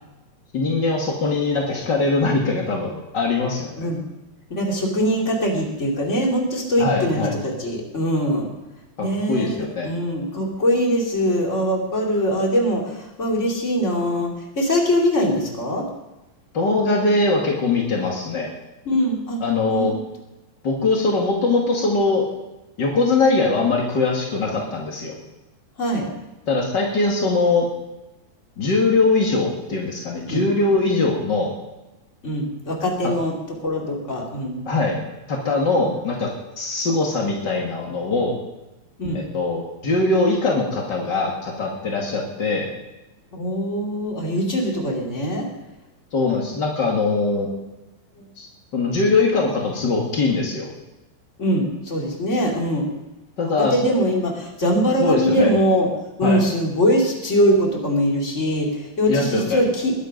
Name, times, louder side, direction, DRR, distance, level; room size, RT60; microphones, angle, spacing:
voice 1, 0.5-3.9 6.8-7.3 9.0-9.9 16.5-18.5 19.4-19.9 20.6-22.2 22.8-25.2 26.5-27.7 28.6-31.5 34.6-35.0 35.3-36.3 36.6-38.3 39.1-42.7 46.1-47.5 48.4-48.5 48.7-50.7 53.4-53.8 55.0-55.5 56.2-56.4 59.1-59.6, left 3 dB, 50° left, -1 dB, 1.3 m, -21 dB
voice 2, 4.5-8.5 9.0-15.9 18.8-19.4 19.7-19.9 25.8-26.1 30.3-30.4 32.2-33.3 33.6-34.6 39.0-39.2 43.3-45.5 47.4-47.5 51.4-52.9 53.6-55.9 56.2-59.9, equal, 20° left, -1 dB, 2.6 m, -22 dB
20.5 x 11.0 x 5.3 m, 1.0 s
omnidirectional pair, 5.2 m